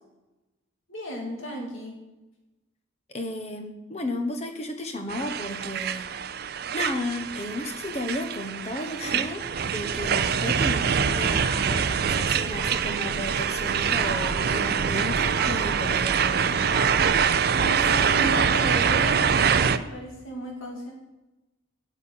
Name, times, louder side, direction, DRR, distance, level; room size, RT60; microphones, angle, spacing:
voice 1, 0.9-2.0 17.6-20.9, equal, 80° left, 0 dB, 2.4 m, -33 dB
voice 2, 3.1-6.2 6.7-16.9, left 1 dB, 30° left, 7 dB, 1.2 m, -33 dB
sound 1, 5.1-19.8, right 7 dB, 50° right, 0.5 m, -24 dB
Fowl, 10.0-12.1 12.6-13.2 13.8-14.7 15.1-17.9, right 3 dB, 20° right, 1.1 m, -40 dB
8.7 x 7.3 x 8.7 m, 1.0 s
head